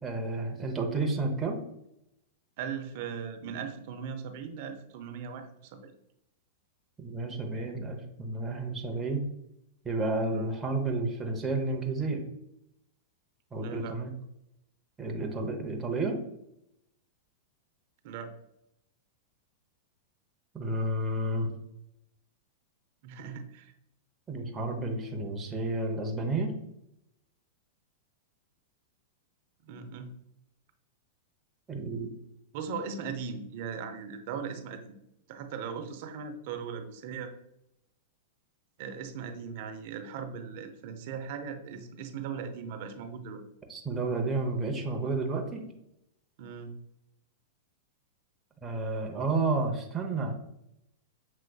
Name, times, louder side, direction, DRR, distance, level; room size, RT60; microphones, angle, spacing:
voice 1, 0.0-1.6 7.0-9.2 9.8-12.2 13.5-14.1 15.0-16.2 20.5-21.5 24.3-26.5 31.7-32.1 43.7-45.6 48.6-50.3, right 2 dB, 15° right, 1 dB, 0.8 m, -31 dB
voice 2, 2.6-5.9 10.3-10.5 13.6-14.0 18.0-18.3 23.0-23.7 29.6-30.1 32.5-34.9 35.3-37.3 38.8-43.4 46.4-46.7, right 6 dB, 55° right, 7 dB, 0.7 m, -38 dB
6.2 x 3.2 x 2.3 m, 0.80 s
hypercardioid pair, 125°, 0 cm